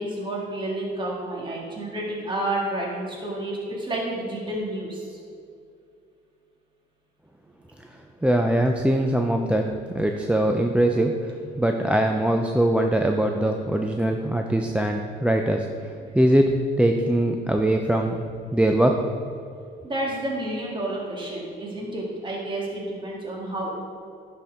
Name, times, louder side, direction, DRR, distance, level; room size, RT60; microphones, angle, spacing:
voice 1, 0.0-5.1 19.8-23.7, right 1 dB, 25° right, -4 dB, 1.7 m, -30 dB
voice 2, 8.2-11.2 11.6-15.7 16.1-16.5 16.8-18.2 18.5-19.0, right 1 dB, 5° right, 3 dB, 0.4 m, -22 dB
11.0 x 4.4 x 3.6 m, 2.4 s
cardioid pair, 90°, 20 cm